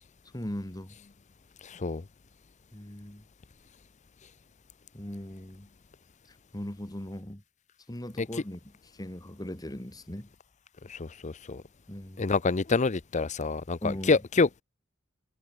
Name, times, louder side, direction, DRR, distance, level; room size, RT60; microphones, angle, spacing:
voice 1, 0.3-1.0 2.7-3.2 4.9-5.7 6.3-7.4 7.9-10.3 11.9-12.3 13.8-14.2, left 1 dB, 20° left, 2.0 m, -39 dB
voice 2, 1.6-2.0 8.2-8.3 10.9-11.6 12.2-14.6, left 4 dB, 35° left, 0.6 m, -27 dB
head